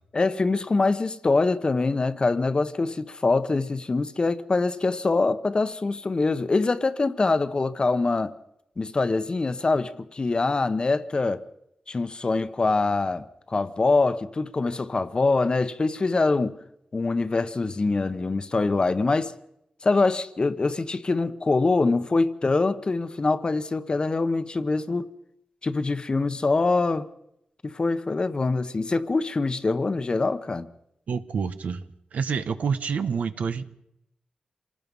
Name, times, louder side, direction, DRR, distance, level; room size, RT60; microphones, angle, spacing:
voice 1, 0.1-8.3 8.8-11.4 11.9-16.6 16.9-19.3 19.8-25.1 25.6-27.1 27.6-30.7, left 3 dB, 35° left, 1.0 m, -24 dB
voice 2, 31.1-31.8 32.1-33.6, right 6 dB, 85° right, 1.2 m, -27 dB
27.0 x 18.5 x 5.5 m
wide cardioid pair, 95°, 3 cm